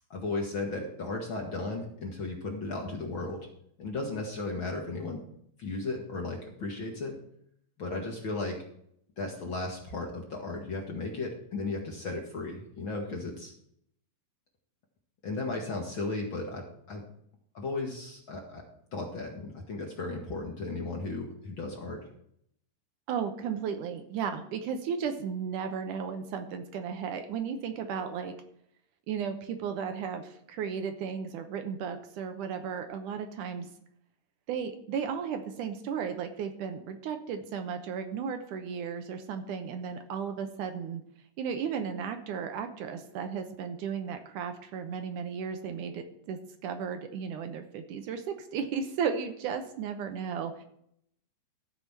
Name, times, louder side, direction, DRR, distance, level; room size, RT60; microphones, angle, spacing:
voice 1, 0.1-3.4 3.8-5.2 5.6-7.2 7.8-8.6 9.2-13.5 15.2-17.0 17.5-18.6 18.9-22.1, left 3 dB, 45° left, 0 dB, 1.8 m, -35 dB
voice 2, 23.1-28.3 29.1-33.7 34.5-41.0 41.4-50.6, right 7 dB, 75° right, 7 dB, 2.3 m, -34 dB
13.5 x 4.9 x 7.2 m, 0.71 s
omnidirectional pair, 3.9 m